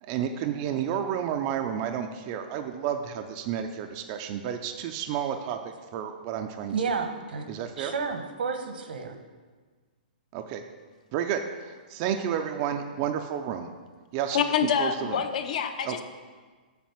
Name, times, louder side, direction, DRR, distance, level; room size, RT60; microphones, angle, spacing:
voice 1, 0.0-6.7 7.5-7.9 10.3-10.6 11.1-13.7 14.1-14.4 14.8-15.2 15.8-16.0, right 9 dB, 25° right, 5 dB, 0.4 m, -31 dB
voice 2, 6.7-7.5 7.8-9.1, right 5 dB, 80° right, 6 dB, 1.2 m, -31 dB
voice 3, 14.3-16.0, left 7 dB, 50° left, 8 dB, 0.7 m, -26 dB
7.4 x 5.2 x 7.2 m, 1.5 s
hypercardioid pair, 165°, 5 cm